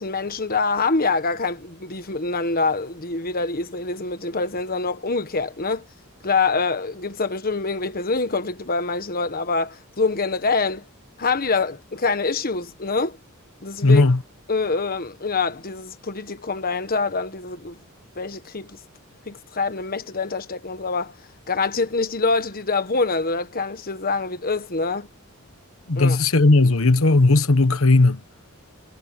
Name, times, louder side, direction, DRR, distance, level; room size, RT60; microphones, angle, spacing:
voice 1, 0.0-5.8 6.2-10.8 11.2-13.2 13.6-14.0 14.5-17.8 18.1-18.8 19.3-21.2 21.5-25.1 26.0-26.2, left 4 dB, 45° left, 1.4 m, -25 dB
voice 2, 13.8-14.2 25.9-28.2, left 2 dB, 70° left, 1.2 m, -16 dB
head